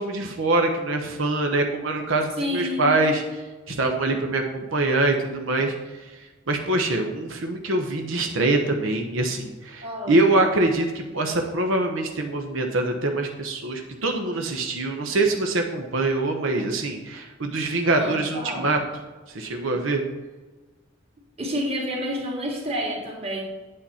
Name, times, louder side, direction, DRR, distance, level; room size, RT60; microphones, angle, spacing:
voice 1, 0.0-3.2 3.7-5.7 6.0-6.1 6.5-18.8 19.3-20.0, right 2 dB, 90° right, 3 dB, 1.0 m, -24 dB
voice 2, 2.4-2.9 9.8-10.2 17.9-18.6 21.4-23.4, equal, 30° right, -1 dB, 2.4 m, -29 dB
8.8 x 8.5 x 4.3 m, 1.2 s
head